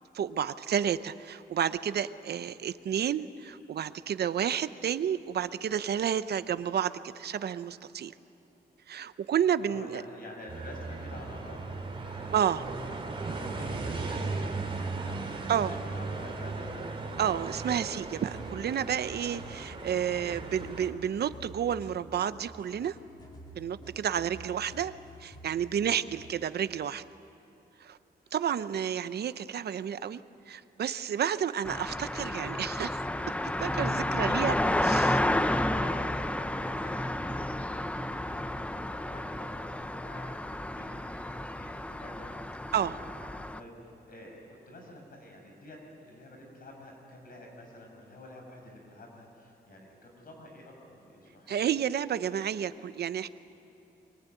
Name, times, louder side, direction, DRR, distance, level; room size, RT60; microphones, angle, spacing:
voice 1, 0.1-8.1 8.9-10.0 12.3-12.7 15.5-15.7 17.2-23.0 23.5-27.0 27.8-28.0 28.3-30.2 30.5-33.1 33.6-34.6 34.9-35.1 42.7-43.0 51.5-53.3, right 9 dB, 70° right, 13 dB, 0.7 m, -31 dB
voice 2, 9.6-11.7 12.0-12.6 13.1-16.7 28.2-28.3 34.1-34.8 35.1-37.6 37.9-51.6, left 1 dB, 60° left, 1 dB, 6.3 m, -49 dB
sound 1, 10.5-20.9, right 3 dB, 30° right, 2.8 m, -37 dB
sound 2, 18.3-26.4, equal, 25° left, 3.2 m, -49 dB
sound 3, 31.7-43.6, left 1 dB, 5° left, 0.6 m, -31 dB
23.5 x 22.5 x 9.2 m, 3.0 s
wide cardioid pair, 145°, 17 cm